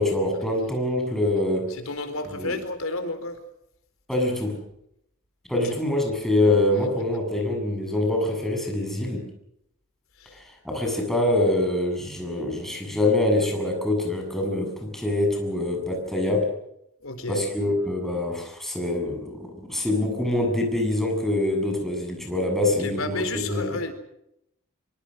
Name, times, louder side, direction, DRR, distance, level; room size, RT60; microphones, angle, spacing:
voice 1, 0.0-1.7 2.2-2.6 4.1-4.6 5.5-9.3 10.3-16.5 17.3-23.8, left 1 dB, ahead, 1 dB, 7.4 m, -25 dB
voice 2, 1.7-3.4 10.2-10.3 17.0-17.4 22.8-23.9, left 2 dB, 70° left, 9 dB, 4.2 m, -31 dB
25.0 x 24.5 x 6.5 m, 0.79 s
head